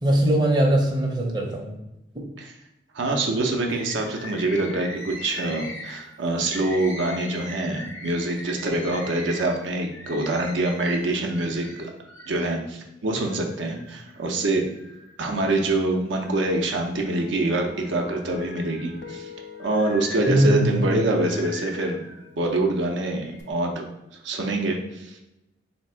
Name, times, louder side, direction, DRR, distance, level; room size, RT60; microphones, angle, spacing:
voice 1, 0.0-1.8 20.3-21.2, right 1 dB, 20° right, -1 dB, 0.6 m, -21 dB
voice 2, 2.9-11.7 12.3-14.6 15.2-19.3 19.6-22.0 22.4-23.9 24.2-25.2, right 2 dB, 75° right, 2 dB, 0.6 m, -25 dB
Bird, 3.7-12.6 13.1-14.1 14.7-15.7 16.1-17.5 18.0-22.3 23.0-23.4, left 2 dB, 85° left, 0.8 m, -41 dB
Guitar, 16.9-23.5, left 4 dB, 70° left, 0.4 m, -44 dB
3.4 x 2.8 x 4.3 m, 0.91 s
head